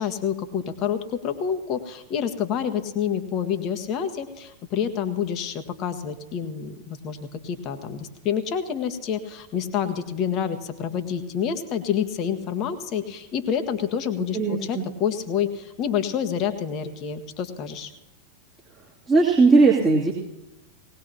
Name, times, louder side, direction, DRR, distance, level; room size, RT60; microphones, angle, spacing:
voice 1, 0.0-17.9, left 8 dB, 35° left, 7 dB, 1.5 m, -28 dB
voice 2, 14.3-14.8 19.1-20.1, right 3 dB, 15° right, -6 dB, 2.7 m, -18 dB
20.0 x 18.5 x 2.9 m, 0.95 s
figure-of-eight pair, 90°, 0 cm